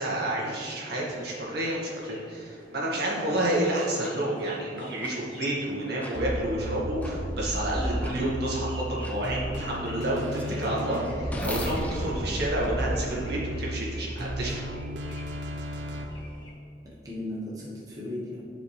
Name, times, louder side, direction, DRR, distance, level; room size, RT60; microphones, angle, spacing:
voice 1, 0.0-14.5, right 1 dB, 65° right, -5 dB, 1.8 m, -30 dB
sound 1, 1.0-16.5, left 1 dB, 30° left, 1.8 m, -49 dB
sound 2, 3.0-3.1 4.0-4.1 5.0-5.1 6.0-6.2 7.0-7.1 8.0-8.1 9.0-9.2 9.7-13.6, equal, 10° left, 0.8 m, -37 dB
voice 2, 3.1-3.4 8.0-8.3 10.4-10.8 12.2-12.5 16.8-18.4, left 1 dB, 20° right, -6 dB, 1.1 m, -38 dB
sound 3, 6.1-16.0, equal, 80° right, 0.7 m, -34 dB
10.0 x 5.0 x 3.2 m, 2.4 s
head